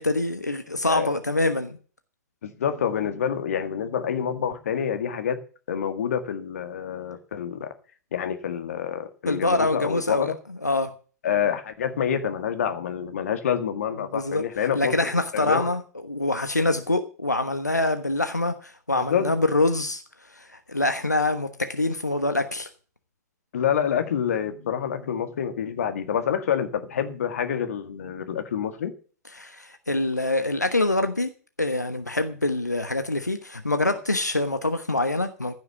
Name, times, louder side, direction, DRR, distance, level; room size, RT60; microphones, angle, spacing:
voice 1, 0.0-1.8 9.3-10.3 10.6-10.9 14.1-14.4 14.7-20.0 20.3-22.7 29.3-31.3 31.6-35.5, left 2 dB, 85° left, 9 dB, 1.1 m, -25 dB
voice 2, 2.4-5.4 5.7-7.7 8.1-10.4 11.2-15.7 18.9-19.3 23.5-28.9, left 8 dB, 60° left, 7 dB, 1.9 m, -27 dB
15.5 x 6.4 x 7.0 m, 0.39 s
figure-of-eight pair, 105°, 9 cm